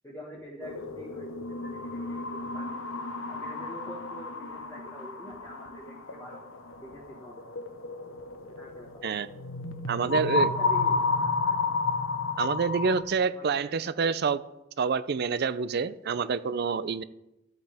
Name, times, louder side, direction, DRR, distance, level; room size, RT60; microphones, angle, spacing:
voice 1, 0.0-6.5 6.8-7.5 8.6-9.1 9.9-11.8 13.3-14.2, equal, 15° left, -4 dB, 1.5 m, -45 dB
sound 1, 0.6-13.0, left 3 dB, 90° left, 1.0 m, -32 dB
voice 2, 9.9-10.5 12.4-14.4 14.8-17.0, right 5 dB, 55° right, 15 dB, 0.4 m, -27 dB
14.0 x 8.1 x 3.4 m, 0.92 s
head